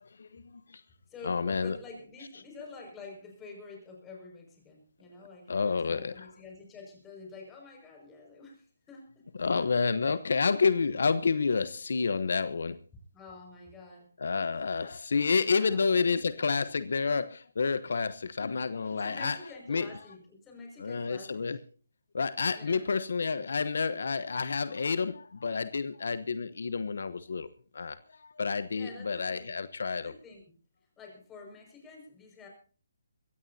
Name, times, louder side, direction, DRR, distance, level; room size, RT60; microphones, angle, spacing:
voice 1, 0.0-0.8 1.2-1.8 5.5-6.3 9.4-12.8 14.2-19.4 19.7-19.9 20.8-21.6 22.1-27.5 27.7-30.1, left 5 dB, 70° left, 0.9 m, -29 dB
voice 2, 1.1-9.2 13.1-14.1 15.4-16.8 18.8-21.5 22.5-22.9 28.7-29.5 29.9-30.5 31.0-32.5, left 3 dB, 10° left, 5.8 m, -48 dB
23.0 x 16.0 x 2.8 m
hypercardioid pair, 160°, 0 cm